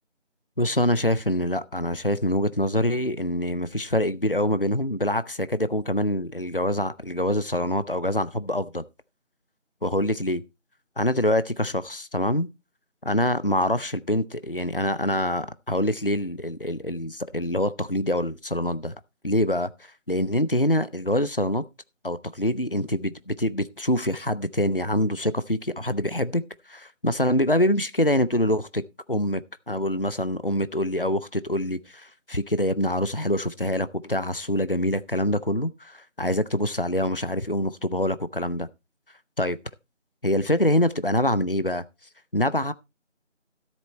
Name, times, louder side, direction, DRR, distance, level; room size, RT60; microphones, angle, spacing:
voice 1, 0.6-8.8 9.8-10.4 11.0-12.5 13.0-18.9 19.2-19.7 20.1-21.6 22.0-26.4 26.7-28.8 29.1-29.4 29.7-38.7 39.4-39.6 40.2-41.8 42.3-42.7, left 1 dB, 50° left, 0.6 m, -25 dB
13.0 x 7.4 x 4.3 m
figure-of-eight pair, 180°, 37 cm